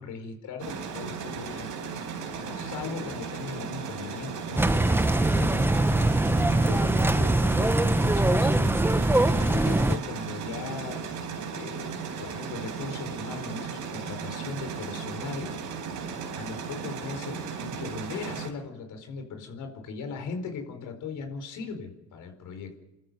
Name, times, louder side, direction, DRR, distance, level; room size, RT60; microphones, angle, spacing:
voice 1, 0.0-1.7 2.3-5.7 6.7-8.7 9.2-11.0 11.5-15.5 16.3-22.8, left 4 dB, 85° left, 6 dB, 4.7 m, -38 dB
sound 1, 0.6-18.5, right 6 dB, 85° right, 4.4 m, -36 dB
sound 2, 4.6-10.0, right 1 dB, 5° right, 0.9 m, -22 dB
29.0 x 13.0 x 8.0 m, 0.97 s
cardioid pair, 90°, 30 cm